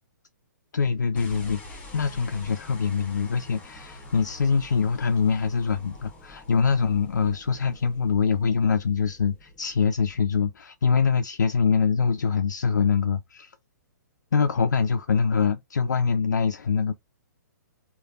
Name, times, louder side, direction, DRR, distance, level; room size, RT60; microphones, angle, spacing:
voice 1, 0.7-13.5 14.3-16.9, left 5 dB, 70° left, 0.4 m, -24 dB
sound 1, 1.2-10.5, left 2 dB, 15° left, 0.8 m, -46 dB
3.2 x 2.2 x 2.4 m
figure-of-eight pair, 120°, 10 cm